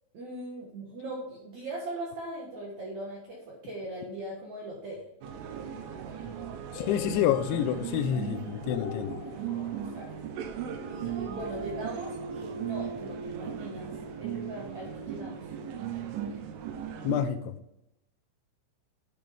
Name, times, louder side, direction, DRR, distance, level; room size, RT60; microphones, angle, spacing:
voice 1, 0.1-5.0 9.9-10.1 10.8-13.9 14.2-15.4, right 1 dB, 70° right, -3 dB, 1.8 m, -39 dB
sound 1, 5.2-17.2, right 8 dB, 85° right, 3.5 m, -37 dB
voice 2, 6.7-9.2 17.0-17.6, left 10 dB, 85° left, 10 dB, 2.7 m, -28 dB
sound 2, 6.8-12.5, left 5 dB, 65° left, 2.7 m, -44 dB
10.0 x 6.2 x 3.4 m, 0.83 s
omnidirectional pair, 5.5 m